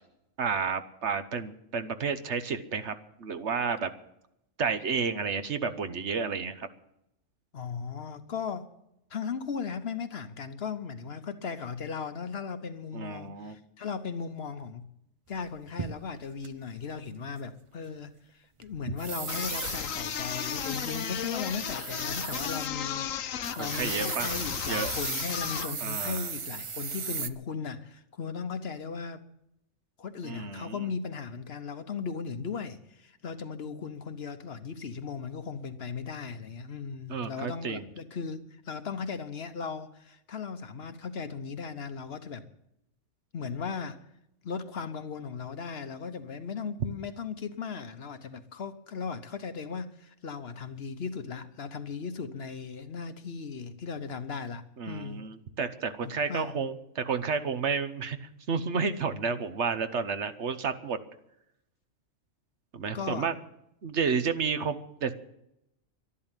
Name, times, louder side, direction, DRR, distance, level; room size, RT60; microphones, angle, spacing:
voice 1, 0.4-3.9 4.6-6.7 12.9-13.5 23.6-24.3 24.7-24.9 25.8-26.3 30.2-30.8 37.1-37.9 54.8-61.0 62.7-63.3 63.8-65.1, right 5 dB, 65° right, 1.2 m, -31 dB
voice 2, 7.5-8.7 9.1-14.9 15.3-29.2 30.0-42.4 43.3-44.0 44.4-55.3 56.0-56.6 62.9-63.3, left 5 dB, 55° left, 1.1 m, -37 dB
sound 1, 15.4-16.5 18.6-22.7 23.0-23.1 23.4-27.3, right 5 dB, 40° right, 0.4 m, -37 dB
sound 2, 19.3-25.8, left 9 dB, 85° left, 1.1 m, -34 dB
12.0 x 11.5 x 9.0 m
omnidirectional pair, 1.3 m